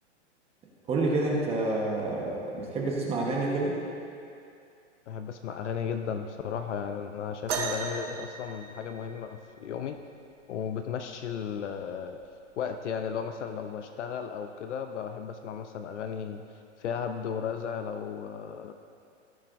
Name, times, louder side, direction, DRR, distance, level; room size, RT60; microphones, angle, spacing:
voice 1, 0.9-3.8, right 2 dB, 15° right, -3 dB, 1.2 m, -28 dB
voice 2, 5.1-10.0 10.5-12.2 12.6-16.4 16.8-18.7, left 7 dB, 70° left, 6 dB, 0.7 m, -35 dB
sound 1, 7.5-9.4 11.0-11.1 11.9-12.2 13.1-13.2, right 5 dB, 75° right, 1.7 m, -35 dB
17.0 x 7.3 x 2.6 m, 2.5 s
hypercardioid pair, 145°, 36 cm